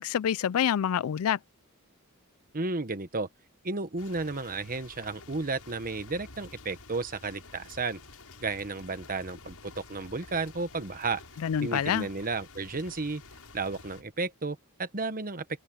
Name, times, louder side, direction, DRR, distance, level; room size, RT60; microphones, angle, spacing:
voice 1, 0.0-1.4 11.4-12.1, left 9 dB, 70° left, 0.4 m, -27 dB
voice 2, 2.5-3.3 3.6-8.0 8.4-11.2 11.6-13.2 13.5-15.6, right 3 dB, 40° right, 1.3 m, -33 dB
sound 1, 4.0-14.0, left 3 dB, 90° left, 7.2 m, -50 dB
open air
head